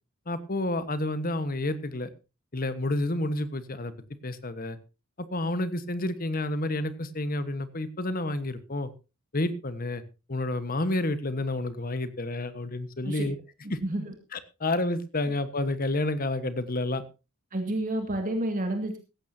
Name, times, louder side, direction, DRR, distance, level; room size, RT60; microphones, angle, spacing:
voice 1, 0.3-2.1 2.5-3.9 4.2-4.8 5.3-8.9 9.3-10.0 10.3-13.4 13.7-13.8 14.3-17.0, left 2 dB, 45° left, 12 dB, 1.3 m, -29 dB
voice 2, 13.8-14.1 17.5-19.0, right 1 dB, 40° right, 5 dB, 2.2 m, -29 dB
17.5 x 15.0 x 2.8 m, 0.30 s
head